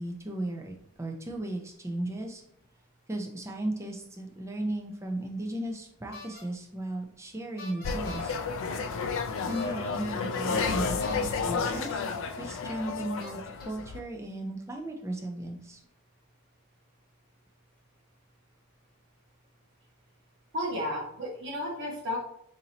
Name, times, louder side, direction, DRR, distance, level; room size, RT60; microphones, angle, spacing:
voice 1, 0.0-2.4 3.1-8.4 9.5-12.0 12.4-15.8, right 1 dB, 15° right, 1 dB, 0.4 m, -36 dB
sound 1, 6.1-6.4 7.6-8.3 9.5-10.0 10.6-11.3 12.3-12.4 13.2-13.6, left 2 dB, 45° left, 0.9 m, -45 dB
sound 2, 7.8-14.0, left 5 dB, 60° left, 0.3 m, -31 dB
voice 2, 20.5-22.2, left 1 dB, 55° right, -5 dB, 1.1 m, -33 dB
2.9 x 2.7 x 3.9 m, 0.71 s
head